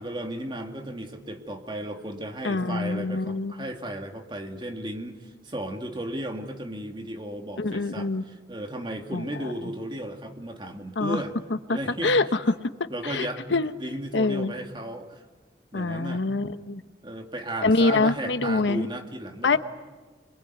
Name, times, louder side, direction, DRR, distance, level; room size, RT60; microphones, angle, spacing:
voice 1, 0.0-11.3 11.7-12.2 12.9-15.2 15.7-16.2 17.0-19.6, right 1 dB, 25° right, 4 dB, 2.2 m, -35 dB
voice 2, 2.4-3.6 7.6-8.2 9.1-9.5 11.0-11.2 11.5-12.5 13.0-13.7 14.1-14.5 15.7-16.8 17.6-18.9 19.4-19.6, left 3 dB, 85° left, 11 dB, 1.1 m, -25 dB
26.5 x 23.0 x 9.4 m, 1.3 s
head